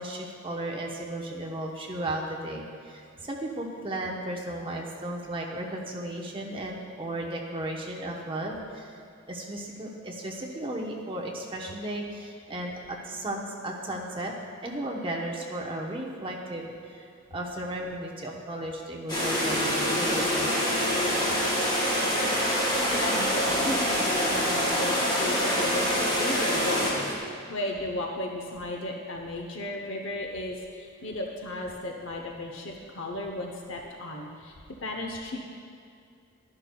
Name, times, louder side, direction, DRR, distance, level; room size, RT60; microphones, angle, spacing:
voice 1, 0.0-9.0 9.3-14.3 14.6-20.6, right 1 dB, 25° right, -1 dB, 1.0 m, -35 dB
sound 1, 19.1-27.1, equal, 20° left, 2.1 m, -25 dB
voice 2, 22.9-25.8 26.1-26.9 27.1-34.6 34.8-35.4, left 1 dB, 65° left, 1 dB, 0.8 m, -34 dB
12.0 x 10.5 x 2.3 m, 2.4 s
head